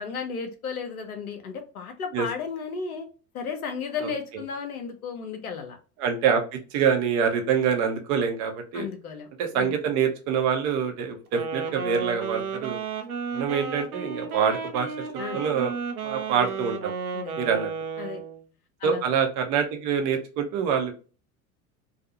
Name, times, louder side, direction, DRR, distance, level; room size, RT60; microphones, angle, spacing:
voice 1, 0.0-3.1 3.3-5.8 8.7-9.7 15.2-15.4 17.1-17.3 18.0-18.2 18.8-19.0, left 5 dB, 75° left, 5 dB, 0.7 m, -34 dB
voice 2, 6.0-8.9 9.4-12.8 13.3-15.1 15.3-15.7 16.0-16.9 17.4-17.7 18.8-20.9, right 7 dB, 40° right, 4 dB, 0.8 m, -25 dB
Wind instrument woodwind instrument, 11.3-18.4, right 5 dB, 80° right, 0.6 m, -33 dB
2.6 x 2.4 x 2.7 m, 0.35 s
figure-of-eight pair, 75°, 44 cm